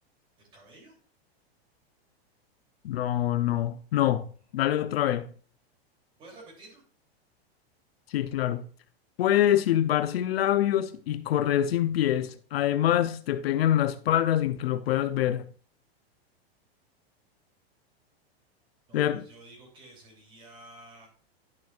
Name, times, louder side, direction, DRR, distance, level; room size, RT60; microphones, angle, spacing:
voice 1, 0.4-1.0 6.2-6.8 18.9-21.1, right 2 dB, 15° right, 3.1 m, -51 dB
voice 2, 2.8-4.3 4.5-5.3 8.1-8.6 9.2-15.4 18.9-19.2, left 12 dB, 70° left, 0.7 m, -25 dB
12.0 x 6.1 x 2.4 m
supercardioid pair, 180°, 32 cm